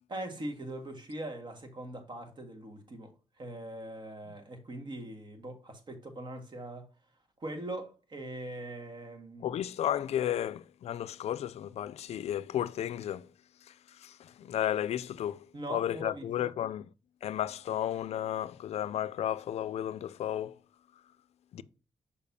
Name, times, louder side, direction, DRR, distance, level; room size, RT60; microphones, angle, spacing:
voice 1, 0.1-6.9 7.4-9.5 15.5-16.5, right 1 dB, 45° right, 1.7 m, -41 dB
voice 2, 9.4-13.3 14.0-16.9 17.2-20.6 21.5-21.6, left 11 dB, 80° left, 0.4 m, -33 dB
6.7 x 5.3 x 2.7 m
cardioid pair, 80°, 11 cm